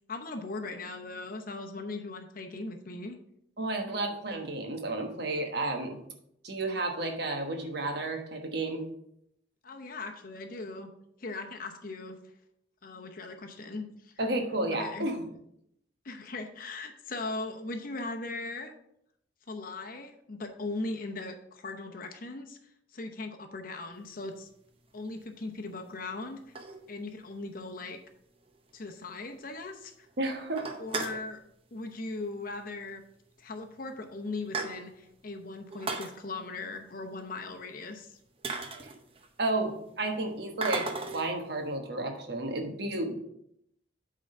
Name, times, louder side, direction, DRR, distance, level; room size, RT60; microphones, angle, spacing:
voice 1, 0.1-3.2 9.6-10.9 11.2-12.2 12.8-14.1 14.7-15.1 16.0-18.7 19.5-22.6 22.9-24.5 24.9-26.6 26.9-28.0 28.7-30.1 30.8-31.4 31.7-33.0 33.4-38.2, left 3 dB, 50° left, 5 dB, 0.8 m, -39 dB
voice 2, 3.6-6.0 6.4-8.8 14.2-15.2 30.2-30.7 39.4-40.9 41.1-43.2, right 2 dB, 60° right, 3 dB, 1.3 m, -32 dB
sound 1, 24.3-24.5 25.2-25.3 26.2-27.2 27.6-27.7 28.0-28.1 28.4-28.5 28.8-28.9 29.3-29.7 30.1-30.2 30.5-31.3 32.4-32.6 32.9-33.0 33.7-33.8 34.1-35.1 35.7-36.1 37.8-37.9 38.4-39.5 40.6-41.3, right 3 dB, 30° right, 0.7 m, -36 dB
8.6 x 3.8 x 5.5 m, 0.76 s
head